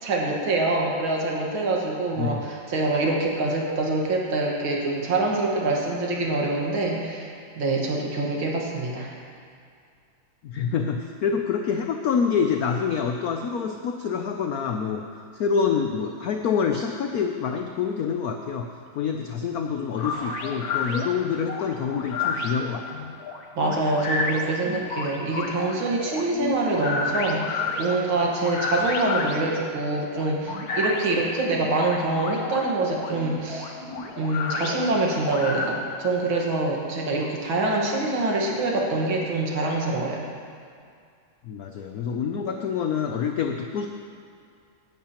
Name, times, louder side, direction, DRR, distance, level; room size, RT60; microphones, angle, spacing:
voice 1, 0.0-7.3 7.6-9.1 23.6-33.8 34.2-40.3, right 2 dB, 75° right, -2 dB, 2.4 m, -25 dB
voice 2, 10.4-15.0 15.3-18.7 18.9-23.1 41.4-43.9, left 6 dB, 80° left, 4 dB, 0.8 m, -26 dB
sound 1, 19.9-35.7, left 3 dB, 55° left, 1.2 m, -31 dB
17.0 x 10.5 x 3.0 m, 2.3 s
omnidirectional pair, 2.2 m